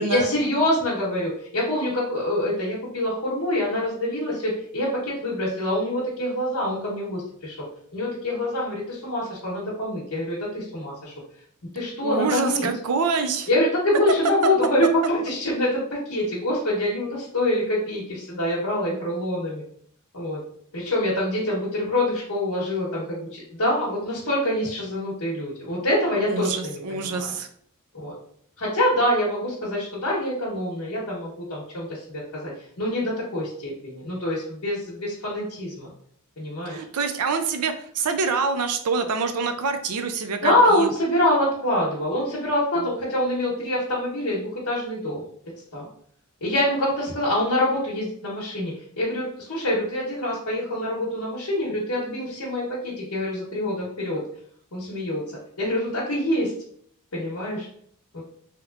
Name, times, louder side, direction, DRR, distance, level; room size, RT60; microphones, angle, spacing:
voice 1, 0.0-7.6 7.9-11.1 11.7-12.7 13.5-19.6 20.1-20.4 20.7-27.3 27.9-28.1 28.6-35.9 36.4-36.8 40.4-45.2 45.7-45.9 46.4-54.2 54.7-55.2 55.6-56.5 57.1-57.7 58.1-58.2, left 1 dB, 70° left, -7 dB, 0.9 m, -25 dB
voice 2, 12.0-13.5 26.3-27.5 36.7-40.9, right 4 dB, 90° right, 8 dB, 0.5 m, -26 dB
3.5 x 2.9 x 2.4 m, 0.63 s
head